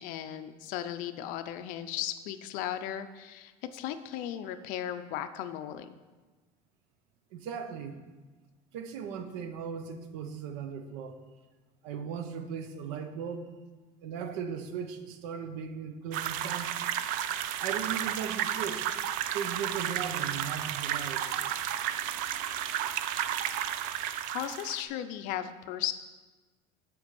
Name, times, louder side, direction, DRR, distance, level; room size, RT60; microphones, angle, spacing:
voice 1, 0.0-5.9 24.3-25.9, left 11 dB, 60° left, 10 dB, 0.6 m, -36 dB
voice 2, 7.3-8.0 8.7-11.1 11.8-13.5 14.0-16.7 17.6-18.9 19.3-21.2, right 7 dB, 90° right, 8 dB, 0.9 m, -37 dB
sound 1, 16.1-24.8, right 10 dB, 60° right, 0.5 m, -32 dB
7.8 x 5.3 x 7.0 m, 1.3 s
cardioid pair, 165°, 16 cm